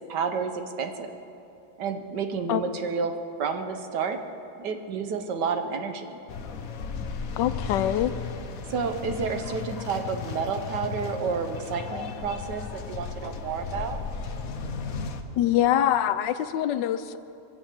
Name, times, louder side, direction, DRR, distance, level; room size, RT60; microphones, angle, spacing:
voice 1, 0.1-1.2 1.8-3.1 3.4-4.2 4.6-6.2 8.7-14.0, right 5 dB, 70° right, 7 dB, 1.6 m, -30 dB
sound 1, 6.3-15.2, left 5 dB, 55° left, 1.2 m, -35 dB
voice 2, 7.4-8.1 15.4-17.2, left 11 dB, 80° left, 12 dB, 1.2 m, -24 dB
23.5 x 7.9 x 7.4 m, 2.7 s
omnidirectional pair, 1.9 m